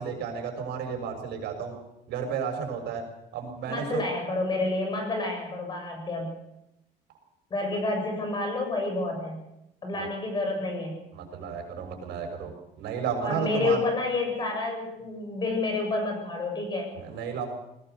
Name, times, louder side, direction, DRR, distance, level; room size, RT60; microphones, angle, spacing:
voice 1, 0.0-1.8 2.1-3.0 3.3-4.0 9.9-10.1 11.1-13.8 17.0-17.5, right 6 dB, 75° right, 3 dB, 6.6 m, -32 dB
voice 2, 3.7-6.3 7.5-9.4 9.8-10.9 13.2-16.9, left 2 dB, 25° left, 3 dB, 7.4 m, -29 dB
20.5 x 19.0 x 6.9 m, 0.87 s
cardioid pair, 165°, 17 cm